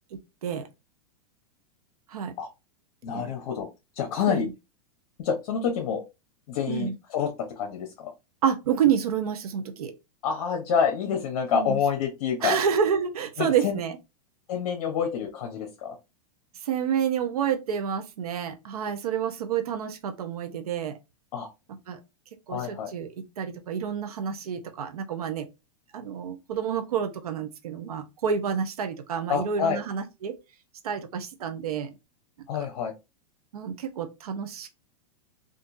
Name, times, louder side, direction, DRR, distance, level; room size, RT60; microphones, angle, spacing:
voice 1, 3.0-3.7 3.9-4.5 5.2-6.0 6.5-8.1 10.2-12.6 13.4-13.8 14.5-16.0 21.3-21.5 22.5-22.9 29.3-29.8 32.5-32.9, left 7 dB, 60° left, 0.9 m, -27 dB
voice 2, 8.4-9.9 11.5-11.8 12.4-14.0 16.6-20.9 21.9-22.0 22.5-23.1 23.4-25.5 25.9-30.3 30.8-31.9 33.5-34.7, right 8 dB, 85° right, 0.8 m, -28 dB
3.7 x 2.6 x 2.6 m
hypercardioid pair, 130°, 19 cm